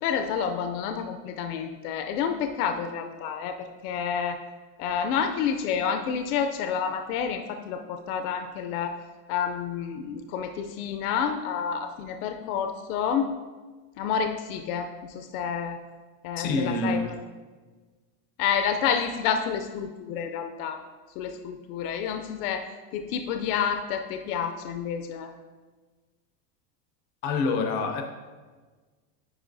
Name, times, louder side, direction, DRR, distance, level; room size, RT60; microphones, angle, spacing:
voice 1, 0.0-3.6 3.8-4.4 4.8-9.0 9.3-13.3 14.0-15.8 16.2-17.2 18.4-20.8 21.2-22.7 22.9-25.3, left 7 dB, 70° left, 6 dB, 0.6 m, -29 dB
voice 2, 16.4-17.1 27.2-28.0, left 3 dB, 30° left, 4 dB, 0.5 m, -26 dB
9.7 x 4.9 x 2.6 m, 1.4 s
supercardioid pair, 175°, 47 cm